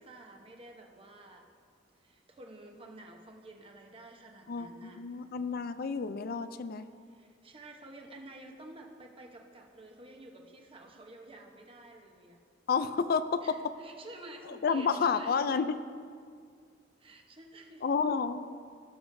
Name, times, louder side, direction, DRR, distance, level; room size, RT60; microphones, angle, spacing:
voice 1, 0.0-1.4 2.0-5.0 7.1-12.4 13.4-15.6 17.0-17.8, right 1 dB, 30° right, 2 dB, 1.0 m, -50 dB
voice 2, 4.5-6.8 12.7-13.4 14.5-15.8 17.8-18.6, left 5 dB, 55° left, 12 dB, 0.4 m, -30 dB
17.5 x 7.0 x 2.7 m, 2.1 s
head